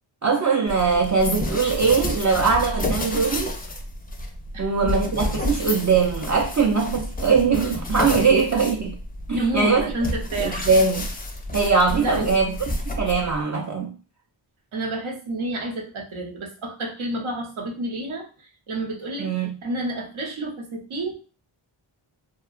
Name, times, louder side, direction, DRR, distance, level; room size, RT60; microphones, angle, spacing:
voice 1, 0.2-3.6 4.6-9.0 9.3-9.9 10.4-11.1 11.5-12.6 12.9-13.9 19.2-19.5, right 5 dB, 35° right, 0.5 m, -21 dB
sound 1, 0.7-13.4, left 1 dB, 20° left, 0.4 m, -30 dB
voice 2, 4.5-4.9 9.3-10.7 11.9-12.4 14.7-21.1, right 1 dB, 70° right, 0.8 m, -29 dB
2.8 x 2.3 x 2.3 m
wide cardioid pair, 80°, 50 cm